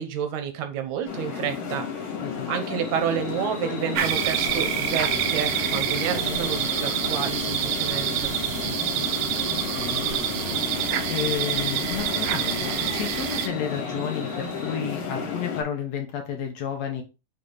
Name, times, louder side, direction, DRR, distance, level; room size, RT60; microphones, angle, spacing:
voice 1, 0.0-1.9 2.5-8.4, right 8 dB, 70° right, 7 dB, 2.1 m, -30 dB
sound 1, 1.0-15.6, left 6 dB, 80° left, 3.5 m, -32 dB
sound 2, 2.5-14.8, left 2 dB, 45° left, 0.6 m, -43 dB
sound 3, 4.0-13.5, right 10 dB, 90° right, 2.4 m, -27 dB
voice 2, 9.5-10.6 11.1-17.0, left 8 dB, 65° left, 3 dB, 2.0 m, -32 dB
7.9 x 3.6 x 3.9 m, 0.28 s
omnidirectional pair, 3.8 m